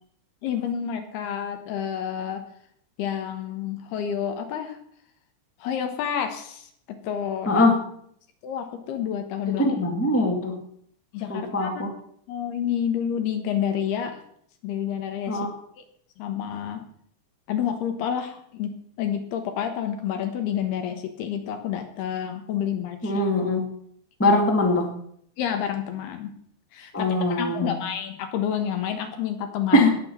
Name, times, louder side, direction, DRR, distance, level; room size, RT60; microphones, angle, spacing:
voice 1, 0.4-2.4 3.0-4.8 5.6-7.6 8.4-9.7 11.1-11.8 12.3-14.2 14.6-15.4 16.2-16.8 17.5-18.7 19.0-23.1 25.4-26.3 26.7-29.9, left 9 dB, 70° left, 6 dB, 3.1 m, -29 dB
voice 2, 9.6-10.5 11.3-11.9 15.3-15.5 23.0-23.6 24.2-24.9 26.9-27.8 29.7-29.9, left 1 dB, 5° left, 0 dB, 1.3 m, -22 dB
18.0 x 6.2 x 7.3 m, 0.67 s
omnidirectional pair, 5.1 m